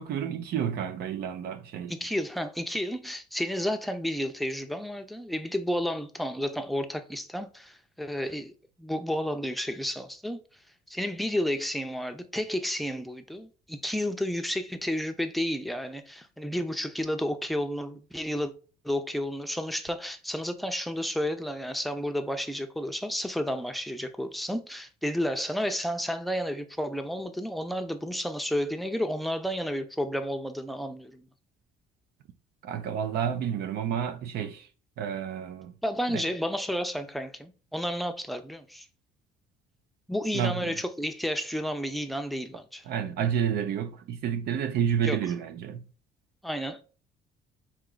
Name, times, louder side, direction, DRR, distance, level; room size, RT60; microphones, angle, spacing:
voice 1, 0.0-1.9 32.6-34.7 35.0-35.7 36.1-36.2 40.3-40.8 42.9-45.8, right 8 dB, 70° right, 0.7 m, -30 dB
voice 2, 1.9-8.5 8.8-10.4 10.9-18.5 18.8-31.3 35.8-38.9 40.1-42.9 45.0-45.2 46.4-46.8, equal, ahead, 0.6 m, -31 dB
4.5 x 3.0 x 3.8 m
cardioid pair, 110°, 17 cm